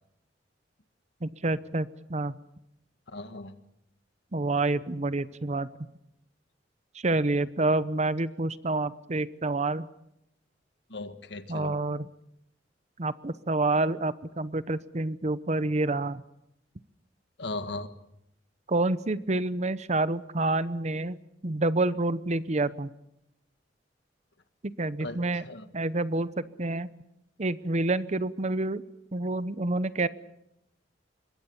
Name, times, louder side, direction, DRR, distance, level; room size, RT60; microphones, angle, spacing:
voice 1, 1.2-2.3 4.3-5.7 6.9-9.9 11.5-12.1 13.0-16.2 18.7-22.9 24.6-25.4 25.7-26.9 27.4-28.8 29.1-30.1, right 2 dB, 40° right, 16 dB, 0.9 m, -28 dB
voice 2, 3.1-3.5 10.9-11.7 17.4-17.9 25.0-25.6, left 2 dB, 70° left, 10 dB, 1.8 m, -37 dB
25.5 x 22.5 x 7.1 m, 0.82 s
head